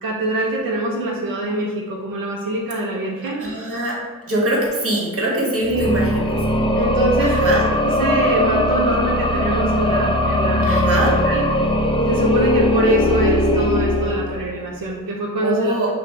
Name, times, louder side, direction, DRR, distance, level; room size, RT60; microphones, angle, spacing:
voice 1, 0.0-3.4 5.7-5.9 6.7-10.9 11.2-11.4 12.0-15.9, right 1 dB, 85° right, -3 dB, 0.6 m, -24 dB
voice 2, 3.2-4.0 4.2-6.3 7.2-7.6 10.6-11.2 15.4-15.9, right 1 dB, 40° right, -3 dB, 1.3 m, -22 dB
sound 1, 5.6-14.7, left 1 dB, 15° left, 0.4 m, -19 dB
5.7 x 2.0 x 3.7 m, 1.4 s
wide cardioid pair, 75°, 33 cm